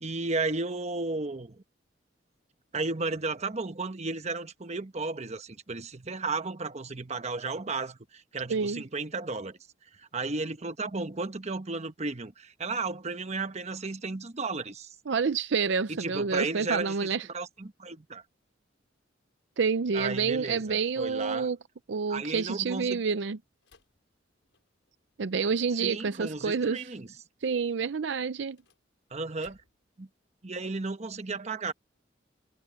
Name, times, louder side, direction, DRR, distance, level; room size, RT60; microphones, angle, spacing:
voice 1, 0.0-1.6 2.7-9.6 10.0-14.9 15.9-18.2 19.9-21.5 22.1-23.0 25.8-27.1 29.1-29.6 30.0-30.1 30.4-31.7, right 3 dB, 35° right, 1.1 m, -34 dB
voice 2, 8.5-8.8 15.1-17.3 19.6-21.6 21.9-23.4 25.2-26.8 27.4-28.6, right 5 dB, 65° right, 0.5 m, -28 dB
sound 1, 23.6-25.0 28.3-30.0, left 3 dB, 85° left, 5.7 m, -64 dB
head